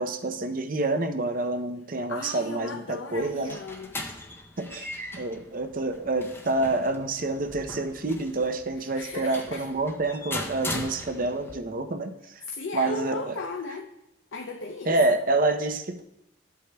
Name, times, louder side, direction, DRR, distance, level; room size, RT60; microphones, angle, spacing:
voice 1, 0.0-3.6 4.6-12.4 12.7-13.4 14.9-16.0, right 2 dB, 45° right, 8 dB, 0.6 m, -28 dB
voice 2, 2.1-4.0 8.9-9.6 12.4-13.9 14.3-15.0, left 3 dB, 70° left, 3 dB, 0.6 m, -36 dB
sound 1, 3.2-11.6, left 1 dB, 10° left, 0.5 m, -39 dB
13.0 x 8.2 x 2.3 m, 0.84 s
head